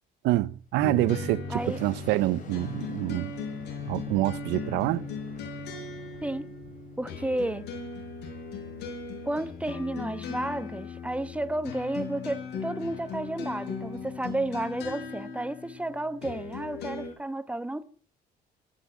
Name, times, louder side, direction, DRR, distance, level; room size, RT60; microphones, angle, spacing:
voice 1, 0.2-3.3 3.9-5.1, right 17 dB, 90° right, 0.7 m, -26 dB
Boom, 0.6-10.0, left 4 dB, 50° left, 6.8 m, -51 dB
sound 1, 0.8-17.1, left 5 dB, 80° left, 6.2 m, -38 dB
voice 2, 7.0-7.7 9.2-17.8, right 1 dB, 5° right, 1.2 m, -32 dB
15.0 x 12.0 x 7.3 m
cardioid pair, 110°, 17 cm